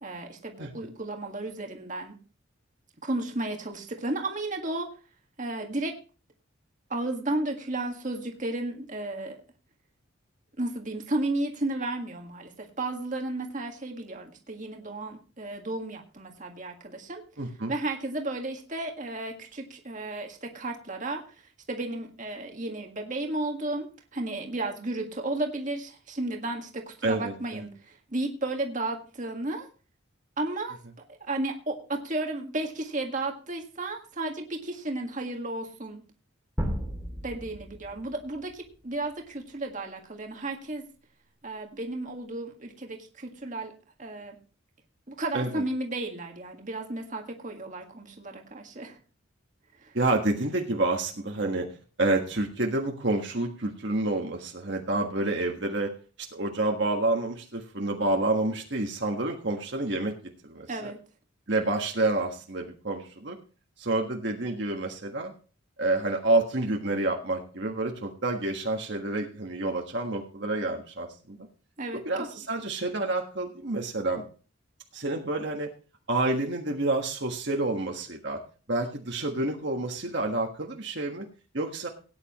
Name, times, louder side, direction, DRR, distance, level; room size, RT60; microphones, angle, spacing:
voice 1, 0.0-2.2 3.0-4.9 5.4-6.0 6.9-9.4 10.6-17.2 17.7-21.2 21.7-29.7 30.4-30.8 31.1-36.0 37.2-40.8 41.4-43.7 44.0-44.4 45.1-49.0 49.8-49.9 60.7-61.0 71.8-72.0, right 2 dB, 35° right, 2 dB, 1.8 m, -33 dB
voice 2, 17.4-17.7 27.0-27.7 45.3-45.6 49.9-51.7 52.0-55.9 56.3-60.1 60.4-60.9 61.5-63.4 63.8-65.3 65.8-71.5 72.0-74.2 74.9-75.7 76.1-78.4 78.7-81.2 81.5-81.9, right 2 dB, 55° right, 1 dB, 1.6 m, -28 dB
sound 1, 36.6-38.5, equal, 10° right, 2.4 m, -34 dB
17.5 x 9.6 x 3.1 m, 0.37 s
head